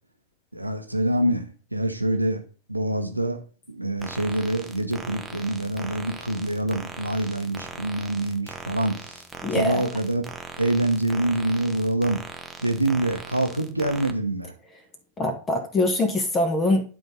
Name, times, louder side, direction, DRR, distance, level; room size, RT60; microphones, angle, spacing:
voice 1, 0.5-2.4 2.7-3.4 3.7-9.2 9.5-10.2 10.6-12.2 12.6-14.5, right 1 dB, 85° right, 1.0 m, -25 dB
sound 1, 4.0-14.1, right 2 dB, 5° right, 0.9 m, -40 dB
voice 2, 9.4-9.9 15.2-16.8, left 1 dB, 20° left, 1.2 m, -23 dB
10.5 x 3.9 x 3.9 m
figure-of-eight pair, 90°, 0 cm